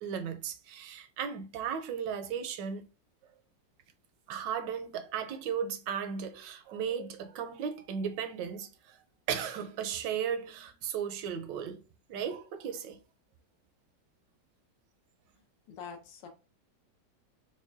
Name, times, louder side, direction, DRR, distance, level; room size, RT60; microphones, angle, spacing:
voice 1, 0.0-2.8 4.3-9.0 9.3-11.8 12.1-13.0, right 7 dB, 80° right, 1.2 m, -35 dB
voice 2, 15.7-16.3, left 6 dB, 80° left, 1.4 m, -44 dB
4.7 x 2.2 x 2.6 m
omnidirectional pair, 2.0 m